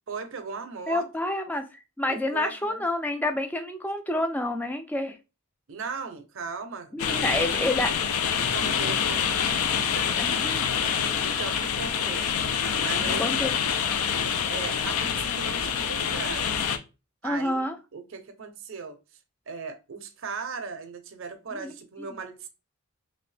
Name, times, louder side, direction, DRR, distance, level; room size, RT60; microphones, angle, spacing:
voice 1, 0.1-1.3 2.1-2.8 5.7-7.9 8.4-10.1 11.0-12.3 12.8-13.4 14.5-16.6 17.2-19.0 19.5-22.5, right 5 dB, 60° right, 0.5 m, -38 dB
voice 2, 0.9-5.2 6.9-7.9 10.2-10.6 13.1-13.5 17.2-17.8 21.5-21.8, left 1 dB, 5° left, 0.3 m, -28 dB
sound 1, 7.0-16.8, left 7 dB, 80° left, 0.4 m, -26 dB
2.9 x 2.7 x 3.2 m
head